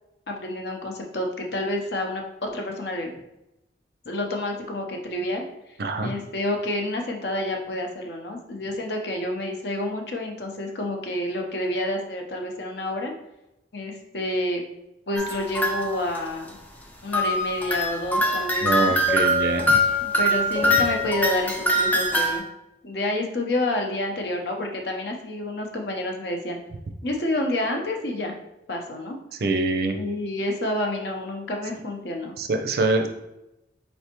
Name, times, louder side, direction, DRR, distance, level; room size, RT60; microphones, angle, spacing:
voice 1, 0.3-3.1 4.1-5.8 6.0-13.1 13.7-14.6 15.1-16.5 17.0-18.9 20.0-22.4 22.8-26.6 27.0-28.3 28.7-29.2 30.0-32.3, left 1 dB, 60° left, 2 dB, 0.7 m, -29 dB
voice 2, 5.8-6.1 18.6-19.8 20.6-20.7 29.4-30.0 32.4-33.1, right 3 dB, 55° right, 6 dB, 0.4 m, -24 dB
sound 1, 15.2-16.2 17.1-22.4, left 1 dB, 10° left, 0.4 m, -23 dB
4.3 x 3.4 x 2.9 m, 0.90 s
head